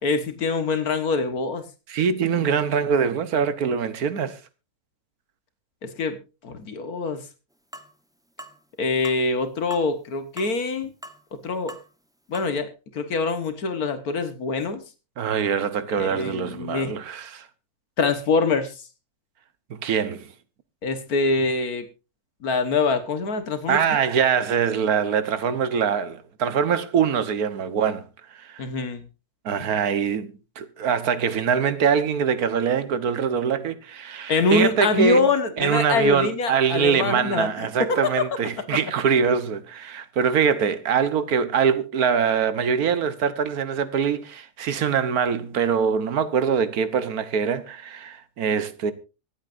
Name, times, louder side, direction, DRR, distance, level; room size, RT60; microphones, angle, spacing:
voice 1, 0.0-1.6 5.8-6.2 6.4-7.2 8.8-10.9 11.4-11.7 12.3-14.8 15.9-16.9 18.0-18.7 20.8-21.9 22.4-23.8 28.6-29.0 34.3-38.1, left 3 dB, 80° left, 1.9 m, -24 dB
voice 2, 1.9-4.4 15.2-17.5 19.7-20.3 23.7-28.0 28.3-28.6 29.4-35.3 35.6-48.9, right 7 dB, 80° right, 1.6 m, -23 dB
sound 1, 7.7-7.9 8.4-8.6 9.0-9.2 9.7-9.9 10.4-10.5 11.0-11.2 11.7-11.9 12.3-12.5, right 1 dB, 5° right, 0.8 m, -41 dB
25.0 x 8.4 x 2.6 m
omnidirectional pair, 1.6 m